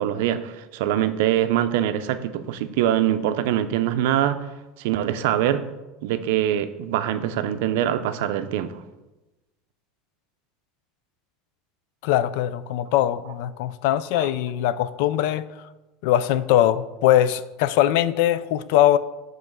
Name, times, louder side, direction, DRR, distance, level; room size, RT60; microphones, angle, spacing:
voice 1, 0.0-4.4 4.8-5.6 6.0-8.8 14.2-14.3, right 11 dB, 75° right, 11 dB, 0.4 m, -23 dB
voice 2, 12.0-15.5 16.0-19.0, left 12 dB, 70° left, 16 dB, 0.3 m, -21 dB
5.3 x 3.8 x 6.0 m, 1.1 s
supercardioid pair, 125°, 0 cm